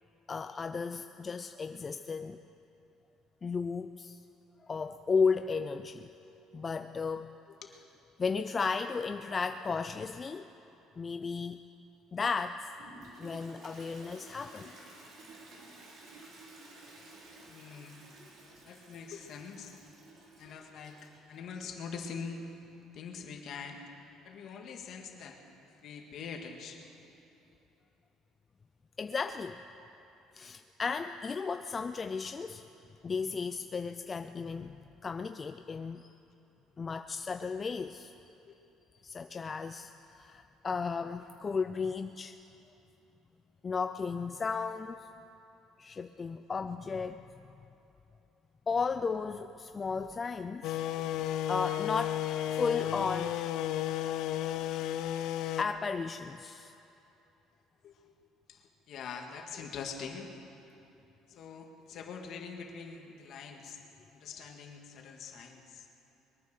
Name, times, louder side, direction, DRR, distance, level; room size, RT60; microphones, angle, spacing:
voice 1, 0.3-2.4 3.4-4.2 4.6-6.1 6.5-7.3 8.2-10.5 11.0-11.6 12.1-12.7 13.2-14.7 29.0-29.6 30.3-32.6 33.0-34.8 35.0-36.1 36.8-38.1 39.0-42.4 43.6-45.0 45.8-47.2 48.7-50.8 51.5-52.2 52.5-53.4 55.6-56.7, left 5 dB, 25° left, 9 dB, 0.4 m, -34 dB
Toilet flush, 12.8-21.3, right 2 dB, 65° right, 4.0 m, -53 dB
voice 2, 17.4-18.0 18.6-19.8 20.4-22.4 22.9-23.8 24.2-25.4 25.8-26.9 38.4-38.6 57.8-58.1 58.5-60.4 61.3-63.8 64.1-65.9, left 5 dB, 55° left, 3 dB, 1.8 m, -44 dB
sound 1, 50.6-55.6, left 12 dB, 70° left, 0.6 m, -33 dB
22.0 x 9.4 x 6.6 m, 2.9 s
cardioid pair, 125°, 0 cm